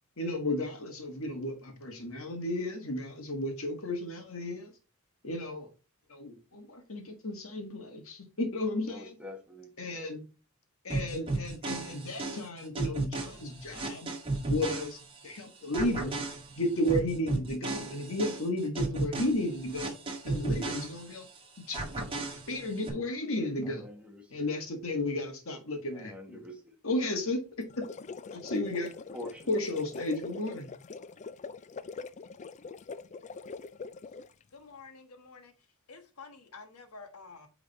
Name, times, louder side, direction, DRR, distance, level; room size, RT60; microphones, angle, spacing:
voice 1, 0.2-4.7 5.2-5.7 6.1-9.2 9.8-10.2 10.8-14.1 14.5-16.2 16.6-19.9 20.2-21.3 21.7-21.8 22.5-23.9 24.3-26.4 26.8-27.8 28.3-28.9 29.5-30.8, left 1 dB, 65° left, 1.8 m, -33 dB
voice 2, 8.9-9.7 23.6-24.5 25.9-26.8 29.1-29.5, left 1 dB, 5° right, 1.3 m, -46 dB
sound 1, 10.9-15.4 15.7-21.4 21.7-22.9, right 2 dB, 25° right, 1.9 m, -34 dB
sound 2, 27.6-34.4, left 4 dB, 35° left, 0.3 m, -43 dB
voice 3, 34.5-35.5 35.9-37.5, left 4 dB, 90° left, 1.4 m, -49 dB
8.7 x 4.0 x 4.1 m
head